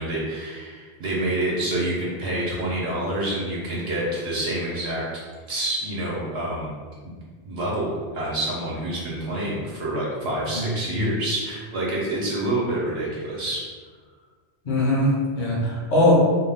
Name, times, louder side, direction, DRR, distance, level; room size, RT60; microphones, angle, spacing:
voice 1, 0.0-5.0 5.5-6.7 7.0-7.1 7.4-13.6, right 1 dB, 75° right, -5 dB, 1.0 m, -27 dB
voice 2, 10.5-11.0 14.6-16.1, left 1 dB, 50° left, -5 dB, 0.8 m, -21 dB
2.4 x 2.2 x 3.3 m, 1.5 s
omnidirectional pair, 1.1 m